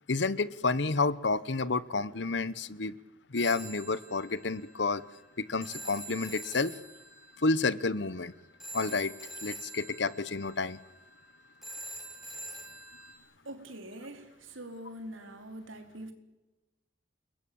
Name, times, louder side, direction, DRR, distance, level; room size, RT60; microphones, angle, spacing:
voice 1, 0.1-3.0 3.3-5.0 5.4-6.8 7.4-8.3 8.7-9.1 9.4-10.8, left 3 dB, 60° left, 18 dB, 1.0 m, -30 dB
Telephone, 3.3-13.1, right 1 dB, ahead, 5.8 m, -46 dB
voice 2, 13.4-16.1, right 1 dB, 90° right, 6 dB, 4.0 m, -44 dB
29.5 x 21.0 x 8.7 m, 1.1 s
head